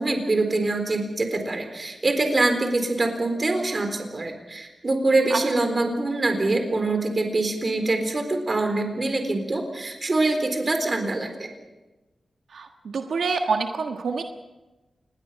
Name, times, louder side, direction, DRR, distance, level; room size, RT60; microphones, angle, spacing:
voice 1, 0.0-11.5, right 2 dB, 35° right, 6 dB, 4.0 m, -24 dB
voice 2, 12.5-14.2, right 4 dB, 90° right, 4 dB, 1.5 m, -26 dB
27.0 x 20.5 x 5.8 m, 1.1 s
wide cardioid pair, 135°, 0 cm